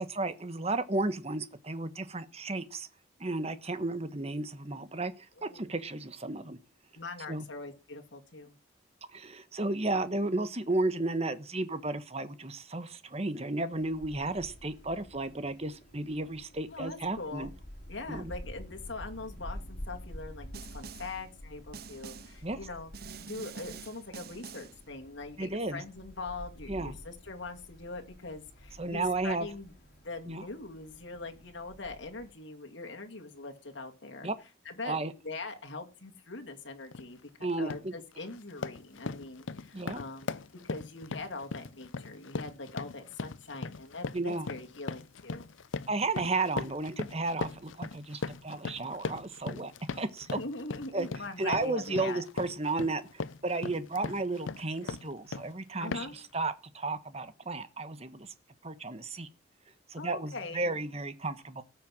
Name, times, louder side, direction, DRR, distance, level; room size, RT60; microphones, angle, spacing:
voice 1, 0.0-2.9 3.2-5.1 5.4-6.6 7.3-7.4 9.1-17.5 18.1-18.3 22.4-22.6 25.4-25.8 26.7-27.0 28.8-29.5 30.3-30.4 34.2-34.4 34.8-35.1 37.4-37.9 39.7-40.0 44.1-44.5 45.9-50.4 50.9-51.1 51.4-58.3 58.6-59.3 59.9-61.6, right 2 dB, 35° right, 1.3 m, -33 dB
voice 2, 5.4-5.7 6.9-8.6 16.7-17.5 17.9-22.9 23.2-29.7 30.0-34.3 34.6-35.0 35.2-37.2 37.6-40.3 40.6-45.5 50.3-52.2 55.8-56.2 60.0-60.7, left 3 dB, 70° left, 2.4 m, -42 dB
Wind, 13.7-32.3, equal, 50° left, 4.4 m, -49 dB
Snare drum, 20.5-21.2 21.7-22.4 22.9-24.8, right 6 dB, 55° right, 0.7 m, -46 dB
sound 1, 36.9-37.1 37.5-37.9 38.3-55.5 55.9-56.3, left 4 dB, 85° left, 0.6 m, -39 dB
18.0 x 6.9 x 6.1 m
head